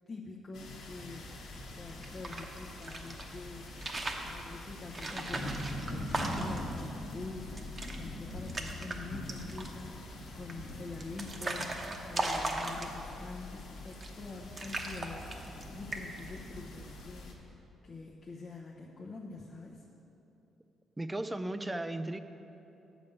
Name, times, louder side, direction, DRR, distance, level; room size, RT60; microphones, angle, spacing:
voice 1, 0.1-3.8 4.2-15.3 15.7-19.8, left 3 dB, 35° left, -2 dB, 0.8 m, -46 dB
sound 1, 0.5-17.3, left 1 dB, 80° left, 1.2 m, -43 dB
sound 2, 1.9-3.2 3.7-4.3 4.9-6.7 7.1-7.2 7.5-8.0 8.3-9.0 9.3-9.8 10.5-13.2 13.9-14.3 14.6-15.6 15.9-16.3, right 2 dB, 35° right, 0.9 m, -37 dB
voice 2, 21.0-22.2, right 1 dB, 15° right, 11 dB, 0.4 m, -35 dB
8.2 x 5.1 x 7.0 m, 2.9 s
cardioid pair, 90°, 0 cm